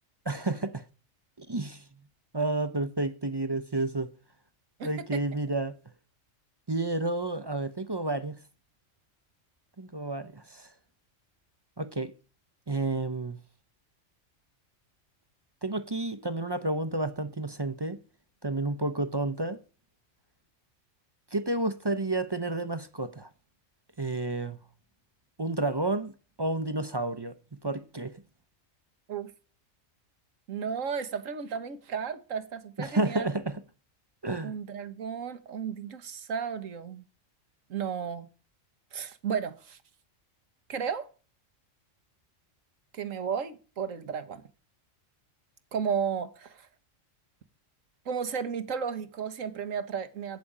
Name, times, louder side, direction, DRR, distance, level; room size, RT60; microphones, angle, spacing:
voice 1, 0.2-0.8 1.4-1.8 2.3-4.1 4.8-5.7 6.7-8.3 9.8-10.7 11.8-12.1 12.7-13.4 15.6-18.0 18.4-19.6 21.3-23.3 24.0-24.6 25.4-26.1 26.4-27.3 27.6-28.1 32.8-33.5 34.2-34.5, right 2 dB, 25° right, 0.6 m, -30 dB
voice 2, 30.5-33.3 34.4-37.0 37.7-38.3 38.9-39.8 40.7-41.1 42.9-44.4 45.7-46.7 48.1-50.4, right 7 dB, 85° right, 1.6 m, -33 dB
15.5 x 5.2 x 8.6 m
omnidirectional pair, 1.3 m